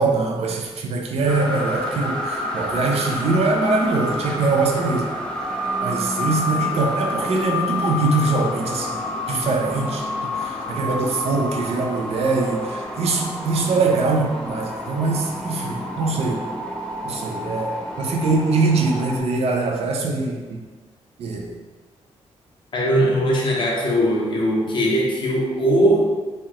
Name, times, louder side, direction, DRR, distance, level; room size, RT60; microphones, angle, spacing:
voice 1, 0.0-2.2 2.5-5.1 5.8-9.0 9.3-10.0 10.4-16.4 17.0-20.4 21.2-21.5, right 3 dB, 65° right, 2 dB, 0.5 m, -22 dB
sound 1, 1.3-19.2, left 1 dB, 10° left, 0.5 m, -29 dB
voice 2, 22.7-26.1, equal, 45° left, -2 dB, 0.7 m, -20 dB
3.2 x 2.7 x 2.4 m, 1.3 s
cardioid pair, 110°, 11 cm